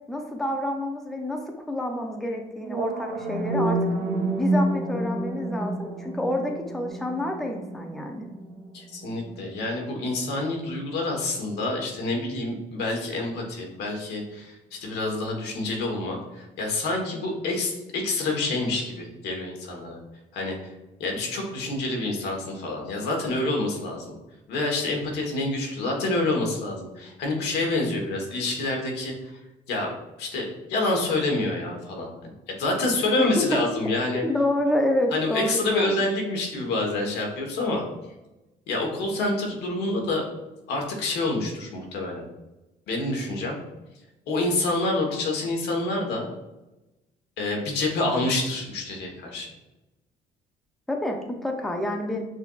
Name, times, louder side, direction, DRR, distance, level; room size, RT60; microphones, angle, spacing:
voice 1, 0.1-1.4 1.7-3.8 4.4-8.3 33.2-33.3 34.2-36.0 50.9-52.2, left 1 dB, ahead, 2 dB, 0.5 m, -28 dB
sound 1, 2.6-10.7, right 2 dB, 75° right, 0.8 m, -29 dB
voice 2, 8.7-20.0 20.3-20.6 21.0-24.1 24.5-29.4 29.7-29.9 30.2-32.1 32.5-34.2 35.1-37.8 38.7-40.2 40.7-42.2 42.9-43.6 44.3-46.3 47.4-49.5, left 2 dB, 80° left, 1 dB, 1.2 m, -27 dB
6.3 x 2.6 x 2.3 m, 1.0 s
cardioid pair, 110°, 17 cm